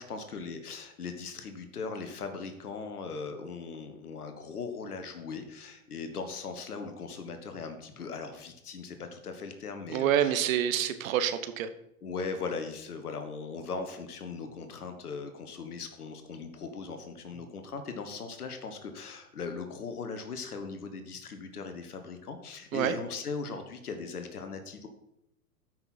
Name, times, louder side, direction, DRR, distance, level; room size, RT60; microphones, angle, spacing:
voice 1, 0.0-10.4 12.0-24.9, left 4 dB, 85° left, 7 dB, 1.6 m, -39 dB
voice 2, 9.9-11.7 22.7-22.9, right 10 dB, 65° right, 11 dB, 1.2 m, -27 dB
13.5 x 6.0 x 4.4 m, 0.82 s
hypercardioid pair, 100°, 44 cm